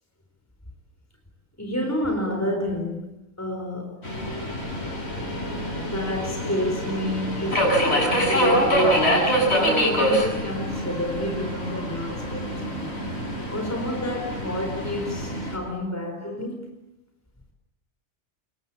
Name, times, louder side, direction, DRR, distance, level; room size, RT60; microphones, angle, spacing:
voice 1, 1.6-4.0 5.3-13.0 13.5-16.7, left 1 dB, 10° left, 4.5 m, -30 dB
Subway metro underground, 4.0-15.6, equal, 55° left, 7.5 m, -25 dB
27.0 x 23.0 x 8.5 m
omnidirectional pair, 1.3 m